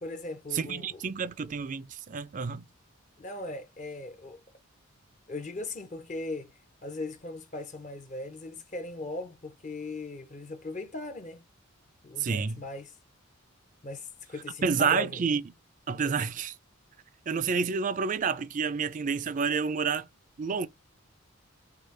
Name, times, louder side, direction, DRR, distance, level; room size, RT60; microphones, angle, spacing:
voice 1, 0.0-1.0 3.2-4.4 5.3-11.4 12.0-13.0 13.8-15.3, left 2 dB, 35° left, 0.6 m, -39 dB
voice 2, 0.5-2.6 12.2-12.6 14.6-15.4 15.9-16.6 17.3-20.1 20.4-20.7, right 5 dB, 35° right, 0.4 m, -29 dB
4.8 x 2.4 x 3.2 m
head